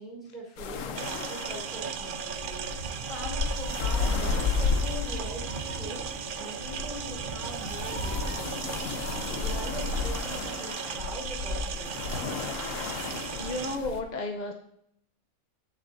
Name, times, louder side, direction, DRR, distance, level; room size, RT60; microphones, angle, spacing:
voice 1, 0.0-8.8 9.1-12.1, right 1 dB, ahead, -4 dB, 4.1 m, -42 dB
sound 1, 0.6-14.0, left 5 dB, 70° left, 1.1 m, -33 dB
sound 2, 1.0-13.8, right 8 dB, 80° right, 0.4 m, -37 dB
Meow, 2.5-9.2, right 3 dB, 50° right, 1.1 m, -42 dB
voice 2, 13.4-14.5, left 2 dB, 40° left, 3 dB, 0.7 m, -32 dB
14.5 x 6.3 x 2.6 m, 0.72 s
omnidirectional pair, 1.5 m